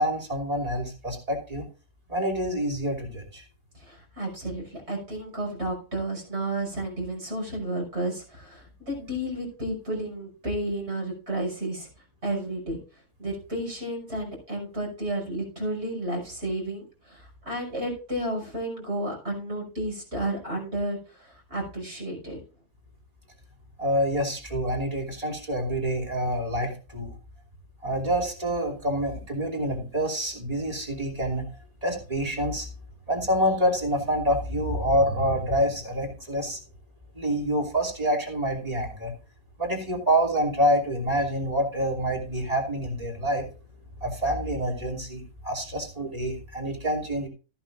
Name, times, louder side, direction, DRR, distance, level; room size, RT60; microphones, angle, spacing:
voice 1, 0.0-1.6 2.1-3.4 23.8-27.2 27.8-31.5 31.8-32.7 33.1-36.6 37.1-39.1 39.6-43.4 44.0-47.3, equal, 30° right, 2 dB, 3.1 m, -27 dB
voice 2, 3.7-11.9 12.2-12.8 13.2-22.4, right 1 dB, 60° right, 0 dB, 6.3 m, -32 dB
14.0 x 11.5 x 2.5 m, 0.35 s
omnidirectional pair, 1.3 m